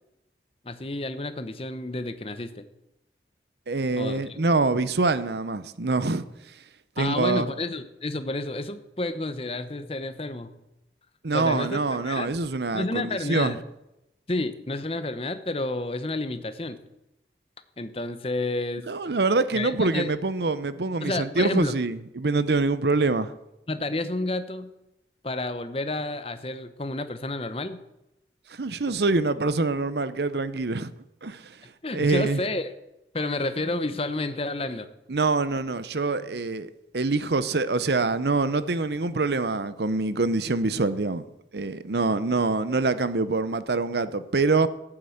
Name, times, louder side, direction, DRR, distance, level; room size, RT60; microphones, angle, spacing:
voice 1, 0.6-2.6 3.9-4.4 7.0-10.5 11.3-12.3 12.7-13.6 14.3-16.8 17.8-18.9 19.5-20.1 21.0-21.8 23.7-24.7 25.2-27.8 31.8-32.7 33.1-34.9, left 2 dB, 30° left, 0.9 m, -30 dB
voice 2, 3.7-6.3 7.0-7.5 11.2-13.6 18.9-23.3 28.5-30.9 31.2-31.6 31.9-32.4 35.1-41.2 41.5-44.7, right 3 dB, 70° right, 0.8 m, -25 dB
14.0 x 8.8 x 7.9 m
head